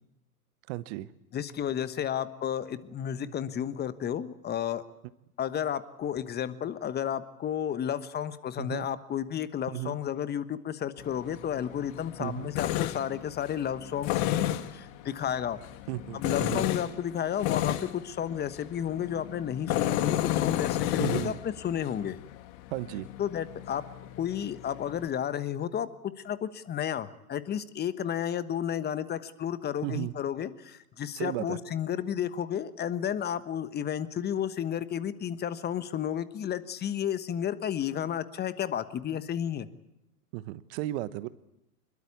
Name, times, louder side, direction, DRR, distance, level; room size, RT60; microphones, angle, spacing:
voice 1, 0.7-1.1 8.6-8.9 9.7-10.0 12.2-12.5 15.9-16.7 21.0-21.4 22.7-23.1 29.8-30.1 31.1-31.6 40.3-41.3, right 16 dB, 45° right, 16 dB, 1.1 m, -34 dB
voice 2, 1.3-4.8 5.4-15.6 16.1-22.2 23.2-23.8 24.2-25.9 26.2-39.7, left 9 dB, 20° left, 13 dB, 1.2 m, -32 dB
Tools, 11.0-25.1, left 13 dB, 40° left, 1.7 m, -33 dB
26.0 x 22.0 x 8.5 m, 0.85 s
figure-of-eight pair, 100°, 46 cm